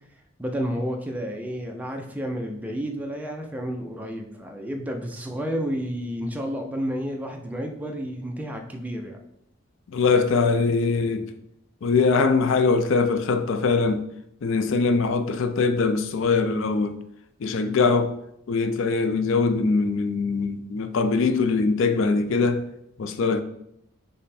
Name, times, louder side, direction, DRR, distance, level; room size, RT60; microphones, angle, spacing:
voice 1, 0.4-9.2, equal, 5° right, 0.4 m, -31 dB
voice 2, 9.9-11.3 11.8-14.0 14.4-17.0 17.4-18.1 18.5-22.6 23.0-23.4, left 4 dB, 65° left, 0.4 m, -22 dB
5.2 x 2.1 x 4.2 m
head